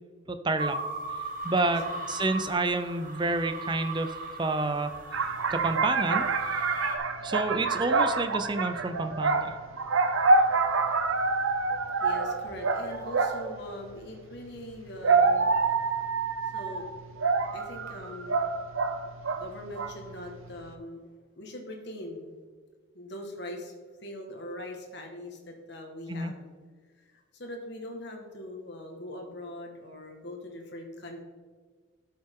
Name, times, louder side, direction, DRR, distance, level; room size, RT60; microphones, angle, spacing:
voice 1, 0.3-0.8 1.4-1.8 2.1-4.1 4.4-4.9 5.5-6.3 7.2-9.6 26.1-26.3, right 2 dB, 20° right, 9 dB, 0.5 m, -29 dB
sound 1, 0.6-7.0, right 2 dB, 40° right, 1.2 m, -37 dB
voice 2, 1.5-2.3 11.9-16.1 16.4-16.9 17.5-18.4 19.4-21.0 21.4-22.3 22.9-23.7 24.0-26.5 27.0-31.2, left 1 dB, 55° left, 2 dB, 1.6 m, -42 dB
sound 2, 5.1-13.6 14.6-19.5 19.8-20.1, right 4 dB, 80° right, 0.8 m, -26 dB
12.5 x 6.3 x 3.8 m, 1.5 s
head